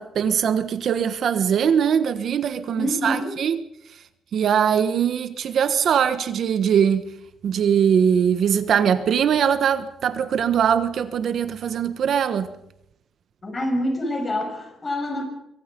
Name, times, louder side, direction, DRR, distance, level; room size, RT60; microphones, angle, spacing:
voice 1, 0.0-3.6 4.3-7.1 7.4-12.5, right 8 dB, 55° right, 1.3 m, -21 dB
voice 2, 2.8-3.3 13.4-15.2, left 1 dB, 25° left, 6.8 m, -26 dB
26.5 x 24.0 x 5.3 m
cardioid pair, 140°, 0 cm